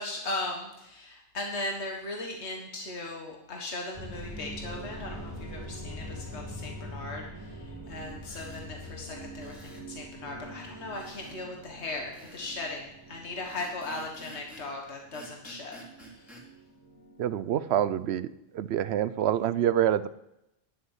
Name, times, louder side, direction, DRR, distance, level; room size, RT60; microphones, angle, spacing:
voice 1, 0.0-15.8 16.2-16.3, left 2 dB, 80° left, 1 dB, 1.8 m, -38 dB
sound 1, 3.9-18.0, equal, 20° right, 1.7 m, -44 dB
sound 2, 8.2-8.7 9.4-9.9 10.9-11.4 12.1-12.6 13.4-14.7 15.1-16.4, right 1 dB, ahead, 2.7 m, -50 dB
voice 2, 17.2-20.1, right 10 dB, 75° right, 16 dB, 0.8 m, -27 dB
11.5 x 6.5 x 7.3 m, 0.87 s
omnidirectional pair, 1.1 m